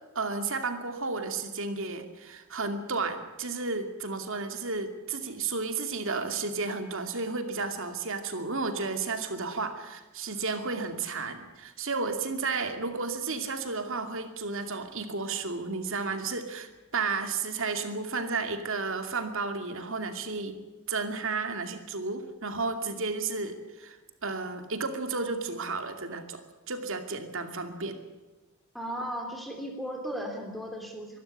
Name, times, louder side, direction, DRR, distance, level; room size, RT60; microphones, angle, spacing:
voice 1, 0.1-20.6 20.9-24.0 24.2-26.4 26.7-28.0, right 4 dB, 65° right, 7 dB, 2.5 m, -32 dB
voice 2, 28.7-31.2, equal, ahead, 2 dB, 3.1 m, -36 dB
23.5 x 12.5 x 9.9 m, 1.2 s
head